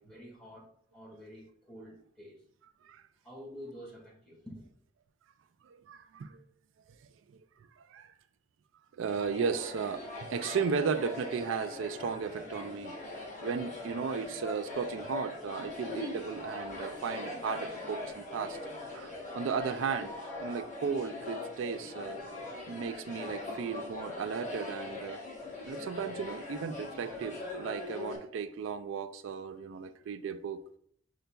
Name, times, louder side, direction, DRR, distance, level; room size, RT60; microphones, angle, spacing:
voice 1, 0.0-2.4 3.2-4.7, equal, 5° left, -4 dB, 1.7 m, -49 dB
voice 2, 5.7-6.4 7.9-8.1 9.0-10.0 10.3-12.9 13.4-18.6 18.9-22.2 22.7-25.2 25.6-30.6, right 6 dB, 85° right, 9 dB, 0.3 m, -35 dB
sound 1, 9.1-28.2, left 2 dB, 40° left, 1.2 m, -41 dB
5.5 x 3.9 x 2.3 m, 0.63 s
head